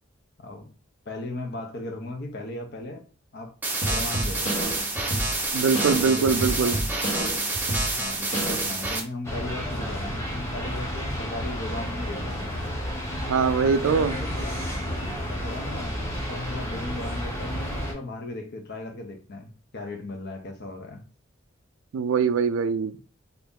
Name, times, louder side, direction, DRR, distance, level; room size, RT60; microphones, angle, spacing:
voice 1, 0.4-0.7 1.1-3.0 3.3-3.5 3.9-4.5 6.0-6.8 7.9-12.6 13.6-14.7 15.4-16.0 16.3-21.0, left 2 dB, 55° left, 0.7 m, -37 dB
sound 1, 3.6-9.0, right 2 dB, 10° right, 0.5 m, -28 dB
sound 2, 3.8-8.9, right 1 dB, 70° left, 1.3 m, -30 dB
voice 2, 5.5-6.8 13.3-14.1 21.9-22.9, right 5 dB, 80° right, 0.3 m, -22 dB
sound 3, 9.2-17.9, equal, 15° left, 0.8 m, -31 dB
2.9 x 2.6 x 3.6 m
head